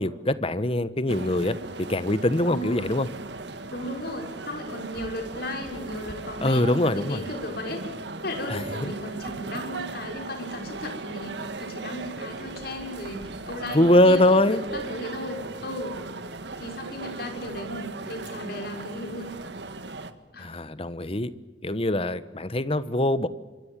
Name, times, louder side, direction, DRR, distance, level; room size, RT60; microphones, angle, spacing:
voice 1, 0.0-1.6 1.9-3.1 6.4-7.2 8.5-8.9 13.7-14.6 20.4-21.3 21.6-23.3, left 1 dB, 30° left, 14 dB, 1.2 m, -23 dB
sound 1, 1.1-20.1, right 3 dB, 75° right, 1.8 m, -37 dB
voice 2, 2.4-2.9 3.7-7.8 8.2-16.0 16.5-19.3 20.3-20.5, left 1 dB, 60° left, 3 dB, 6.4 m, -35 dB
26.5 x 25.5 x 7.5 m, 1.2 s
head